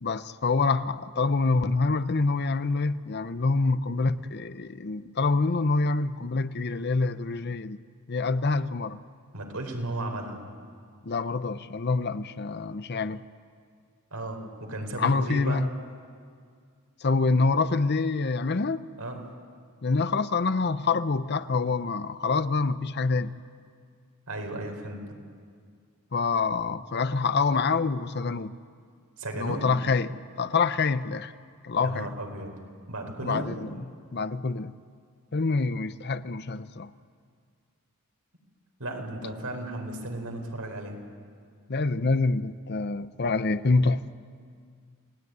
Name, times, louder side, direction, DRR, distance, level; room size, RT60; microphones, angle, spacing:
voice 1, 0.0-7.8 8.1-9.0 11.0-13.2 15.0-15.7 17.0-18.9 19.8-23.3 26.1-28.5 29.4-31.3 31.6-32.1 33.2-33.8 34.1-34.7 35.3-36.9 41.7-44.0, left 4 dB, 50° left, 0.7 m, -26 dB
voice 2, 9.3-10.4 14.1-15.6 19.0-19.2 24.3-25.0 29.2-29.6 31.8-32.5 32.9-33.5 38.8-41.0, right 1 dB, 85° right, 4.5 m, -34 dB
29.0 x 19.0 x 9.5 m
head